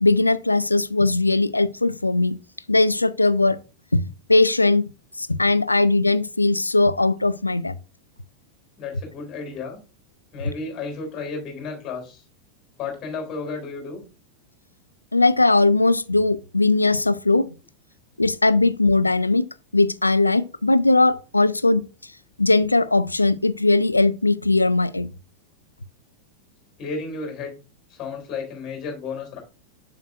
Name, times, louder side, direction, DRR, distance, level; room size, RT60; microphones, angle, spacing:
voice 1, 0.0-2.4 2.7-3.6 3.9-4.0 4.3-4.9 5.2-7.7 15.1-17.5 18.2-19.5 19.7-21.8 22.4-25.1, left 2 dB, 85° left, 0.3 m, -19 dB
voice 2, 8.8-9.8 10.3-12.2 12.8-14.0 26.8-27.6 27.9-29.4, left 4 dB, 30° left, 3.7 m, -32 dB
7.7 x 7.3 x 2.5 m
figure-of-eight pair, 90°, 0 cm